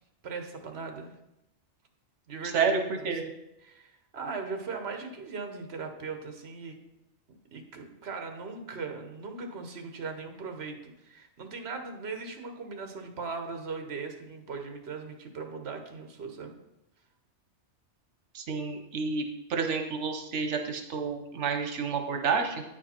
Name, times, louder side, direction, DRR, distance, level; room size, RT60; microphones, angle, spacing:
voice 1, 0.2-1.1 2.3-2.7 3.0-3.4 3.6-6.8 7.5-16.5, right 4 dB, 65° right, 5 dB, 1.2 m, -39 dB
voice 2, 2.4-3.2 18.3-19.2 19.5-22.6, right 5 dB, 85° right, 5 dB, 1.1 m, -29 dB
9.1 x 5.1 x 4.3 m, 0.88 s
omnidirectional pair, 1.2 m